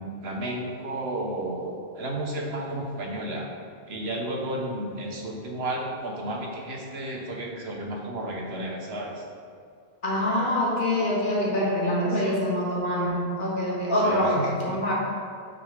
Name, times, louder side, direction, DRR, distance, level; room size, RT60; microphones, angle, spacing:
voice 1, 0.0-3.5 3.9-9.2 12.1-12.3 14.0-14.8, right 1 dB, 75° right, 0 dB, 1.3 m, -32 dB
voice 2, 10.0-14.9, left 1 dB, 50° left, -5 dB, 1.8 m, -25 dB
6.1 x 5.3 x 5.0 m, 2.3 s
omnidirectional pair, 1.1 m